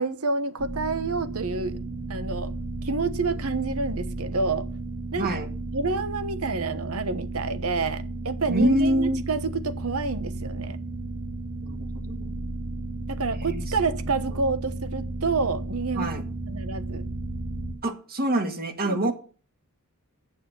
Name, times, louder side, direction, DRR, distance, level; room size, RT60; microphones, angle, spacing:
voice 1, 0.0-1.8 2.1-2.5 2.8-4.7 5.1-5.4 5.7-10.8 13.1-16.1 16.5-17.0 18.8-19.1, right 4 dB, 70° right, 1.0 m, -28 dB
sound 1, 0.6-17.7, right 2 dB, 25° right, 2.6 m, -34 dB
voice 2, 5.2-5.5 8.5-9.2 11.6-12.4 13.3-13.6 15.9-16.2 17.8-19.1, right 1 dB, 45° right, 1.7 m, -26 dB
9.0 x 6.3 x 7.1 m
head